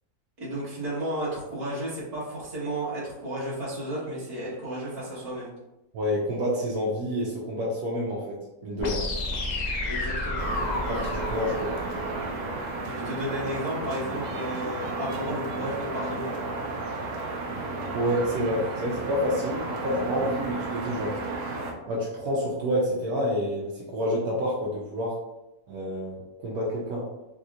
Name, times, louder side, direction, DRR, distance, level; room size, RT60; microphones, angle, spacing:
voice 1, 0.4-5.5 9.8-10.5 12.9-16.3, right 1 dB, 25° right, -8 dB, 0.9 m, -33 dB
voice 2, 5.9-9.0 10.9-11.8 17.9-21.2 21.9-25.2 25.7-27.1, equal, 85° right, -4 dB, 1.1 m, -28 dB
sound 1, 8.8-12.8, left 2 dB, 60° left, 0.4 m, -31 dB
sound 2, 10.4-21.7, right 3 dB, 65° right, 0.9 m, -33 dB
3.5 x 2.7 x 2.4 m, 0.96 s
omnidirectional pair, 1.6 m